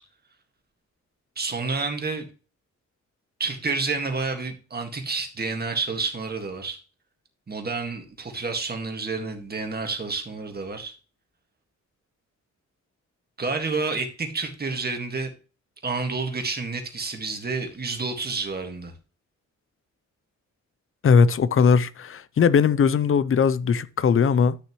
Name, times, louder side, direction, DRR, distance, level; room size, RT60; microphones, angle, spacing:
voice 1, 1.4-2.3 3.4-6.8 7.5-10.9 13.4-15.3 15.8-18.9, right 4 dB, 30° right, 1.8 m, -29 dB
voice 2, 21.0-24.6, left 6 dB, 45° left, 0.6 m, -19 dB
11.5 x 6.5 x 3.1 m
wide cardioid pair, 125°, 30 cm